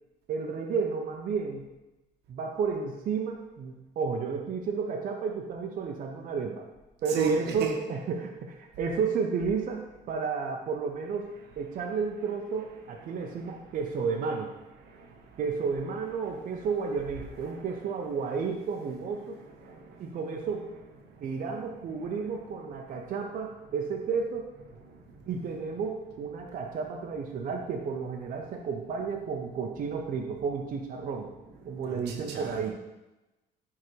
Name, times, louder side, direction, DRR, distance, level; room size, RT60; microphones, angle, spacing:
voice 1, 0.3-1.6 2.3-6.6 7.0-11.3 11.6-14.5 15.4-19.4 20.0-20.7 21.2-24.5 25.3-31.3 31.7-32.7, right 5 dB, 55° right, 1 dB, 0.7 m, -32 dB
voice 2, 7.1-7.8 13.1-13.3 14.8-15.3 19.6-20.0 24.9-25.0 31.9-32.7, right 5 dB, 80° right, 3 dB, 1.1 m, -35 dB
10.5 x 3.7 x 3.3 m, 1.0 s
cardioid pair, 110°, 17 cm